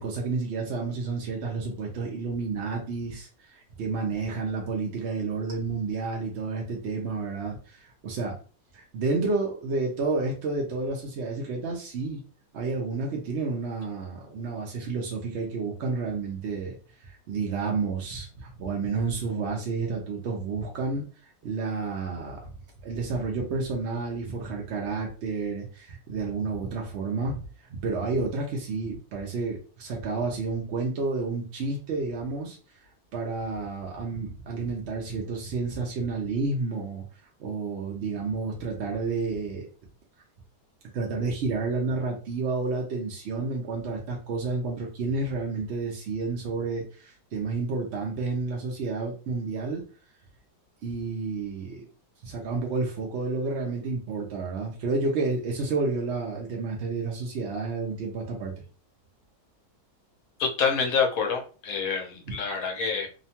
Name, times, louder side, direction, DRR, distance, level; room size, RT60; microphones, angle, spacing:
voice 1, 0.0-8.4 8.7-12.2 12.5-16.8 17.0-22.5 22.8-27.4 27.8-32.6 33.1-37.0 37.4-39.7 40.9-49.8 50.8-51.9 52.2-58.5, right 4 dB, 60° right, -1 dB, 0.7 m, -30 dB
voice 2, 60.4-63.1, left 5 dB, 65° left, 3 dB, 1.0 m, -27 dB
2.9 x 2.2 x 2.8 m, 0.37 s
omnidirectional pair, 1.7 m